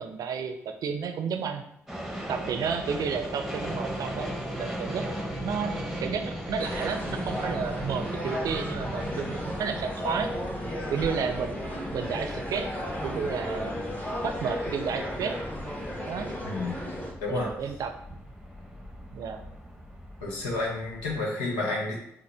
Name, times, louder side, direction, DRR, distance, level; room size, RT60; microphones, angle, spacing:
voice 1, 0.0-1.6 2.3-5.1 5.4-10.3 10.9-12.7 13.0-15.3 16.1-16.3 17.3-18.2 19.1-19.4, right 6 dB, 65° right, 7 dB, 0.5 m, -32 dB
sound 1, 1.9-21.2, equal, ahead, 1.1 m, -38 dB
sound 2, 6.6-17.1, left 1 dB, 25° left, 1.4 m, -35 dB
voice 2, 16.4-16.7 17.2-17.5 20.2-22.0, left 2 dB, 85° left, -2 dB, 1.0 m, -30 dB
5.8 x 2.1 x 3.3 m, 0.75 s
hypercardioid pair, 40°, 7 cm